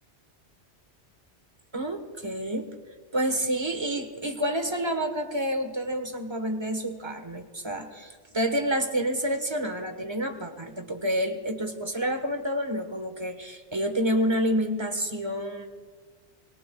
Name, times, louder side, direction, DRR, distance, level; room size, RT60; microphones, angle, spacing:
voice 1, 1.7-2.7 3.1-15.7, equal, 25° right, 6 dB, 1.3 m, -29 dB
27.0 x 20.5 x 2.3 m, 1.5 s
omnidirectional pair, 1.2 m